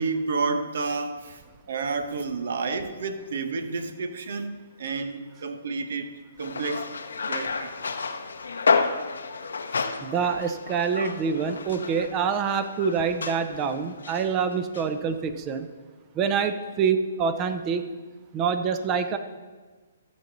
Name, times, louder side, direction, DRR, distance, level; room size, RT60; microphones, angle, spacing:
voice 1, 0.0-1.4 1.7-6.9 7.3-7.7, right 4 dB, 65° right, 9 dB, 1.1 m, -30 dB
sound 1, 6.4-14.3 14.7-14.9, left 5 dB, 80° left, 0.8 m, -30 dB
voice 2, 10.0-15.7 16.1-17.8 18.3-19.2, right 6 dB, 25° right, 9 dB, 0.8 m, -26 dB
13.5 x 7.1 x 4.0 m, 1.4 s
hypercardioid pair, 140°, 0 cm